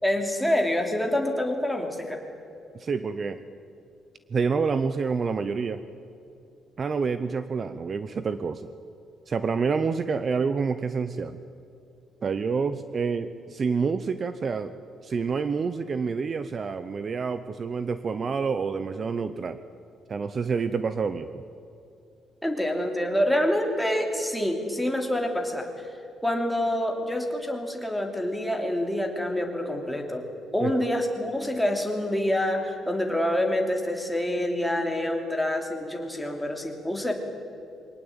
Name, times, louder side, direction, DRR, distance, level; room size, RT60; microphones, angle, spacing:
voice 1, 0.0-2.2 22.4-25.9 26.2-30.3 30.5-37.1, left 1 dB, ahead, 2 dB, 3.0 m, -27 dB
voice 2, 2.7-3.4 4.3-5.8 6.8-8.7 9.3-11.4 12.2-14.7 15.0-19.6 20.1-21.4 30.6-30.7, right 5 dB, 35° right, 12 dB, 0.8 m, -28 dB
23.5 x 18.5 x 8.9 m, 2.7 s
cardioid pair, 140°, 0 cm